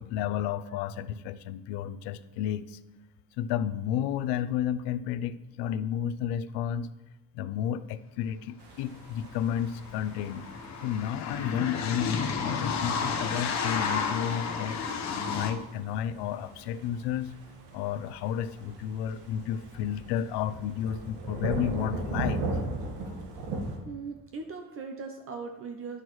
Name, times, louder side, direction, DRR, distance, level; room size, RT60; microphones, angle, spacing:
voice 1, 0.0-2.8 3.4-6.9 7.3-10.5 10.8-14.8 15.3-17.3 17.7-22.4, left 9 dB, 80° left, 13 dB, 0.5 m, -32 dB
sound 1, 8.6-23.8, right 2 dB, 80° right, 1.5 m, -39 dB
sound 2, 9.0-9.1 9.3-15.5, left 5 dB, 45° left, 0.9 m, -32 dB
voice 2, 23.8-26.0, right 4 dB, 35° right, 4 dB, 0.5 m, -39 dB
11.0 x 6.2 x 3.1 m, 1.0 s
cardioid pair, 170°, 40 cm